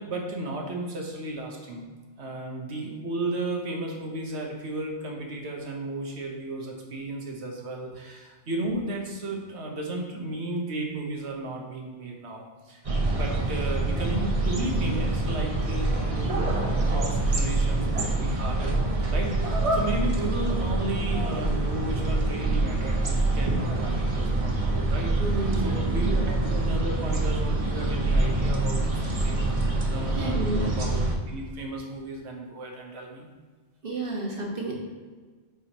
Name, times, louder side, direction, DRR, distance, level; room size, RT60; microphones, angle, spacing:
voice 1, 0.0-1.9 2.2-12.8 13.1-18.8 19.1-31.0 31.3-33.3, right 1 dB, 75° right, 1 dB, 1.3 m, -34 dB
sound 1, 12.8-31.1, right 2 dB, 35° right, 0.8 m, -26 dB
voice 2, 25.2-26.3 30.2-30.7 33.8-34.7, right 2 dB, 55° right, -2 dB, 1.4 m, -31 dB
8.8 x 4.9 x 2.9 m, 1.4 s
omnidirectional pair, 1.1 m